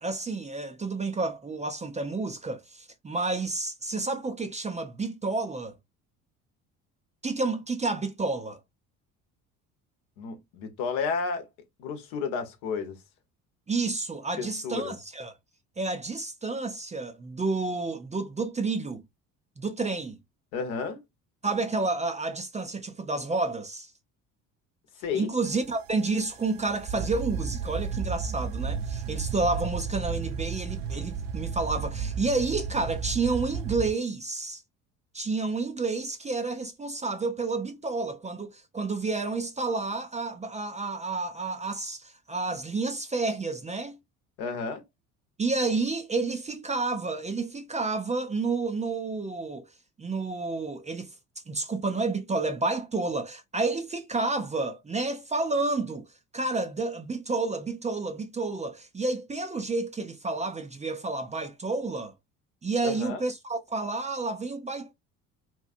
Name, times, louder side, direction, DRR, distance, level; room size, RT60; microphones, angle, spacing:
voice 1, 0.0-5.8 7.2-8.6 13.7-15.3 15.8-19.0 19.6-20.2 21.4-23.9 25.1-34.6 35.1-44.0 45.4-49.6 50.0-51.1 51.5-56.1 56.3-62.1 62.6-64.9, right 3 dB, 15° right, 0.5 m, -30 dB
voice 2, 10.2-11.5 11.8-13.0 14.4-15.0 20.5-21.0 25.0-25.3 44.4-44.8 62.8-63.2, left 5 dB, 70° left, 1.0 m, -32 dB
sound 1, 25.4-33.9, right 6 dB, 60° right, 0.7 m, -33 dB
3.0 x 2.4 x 2.5 m
hypercardioid pair, 60°, 44 cm